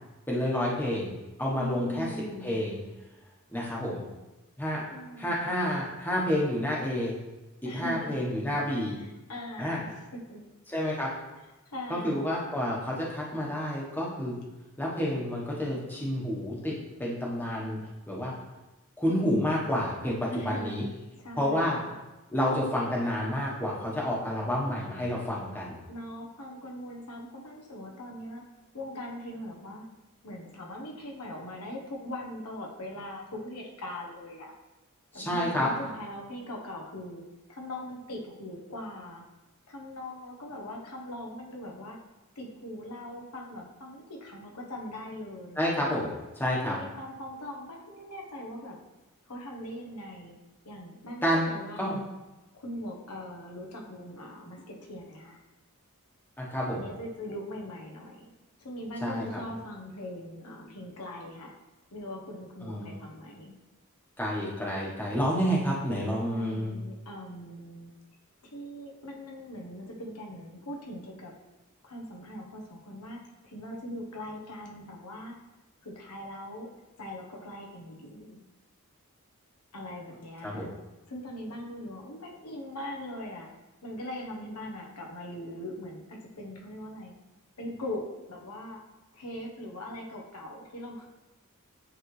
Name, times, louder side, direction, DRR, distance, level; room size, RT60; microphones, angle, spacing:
voice 1, 0.3-1.1 1.4-2.8 3.5-4.0 4.6-4.8 5.2-7.1 7.6-9.0 9.6-9.8 10.7-11.1 11.9-14.4 14.8-17.8 18.1-18.3 19.0-20.8 21.4-21.8 22.3-25.8 35.1-35.7 45.6-46.1 46.4-46.8 51.2-51.5 51.8-52.0 56.4-56.8 59.0-59.4 62.6-63.0 64.2-66.7 80.4-80.7, equal, 10° left, -5 dB, 1.2 m, -29 dB
voice 2, 1.5-2.6 4.9-5.5 7.6-8.1 9.0-10.5 11.6-12.2 17.6-17.8 20.3-20.8 21.1-21.9 25.9-28.4 28.7-29.8 30.2-34.5 35.1-37.2 37.5-39.2 39.7-42.0 42.3-45.7 46.6-48.8 49.3-50.3 50.6-52.0 52.5-55.4 56.7-58.3 58.6-61.5 61.9-63.5 66.2-67.9 68.4-71.4 71.8-75.4 75.8-76.7 77.0-78.4 79.7-80.7 81.1-83.5 83.8-87.2 87.6-88.8 89.1-91.1, left 1 dB, 85° left, 0 dB, 1.1 m, -41 dB
9.4 x 3.4 x 3.3 m, 1.1 s
head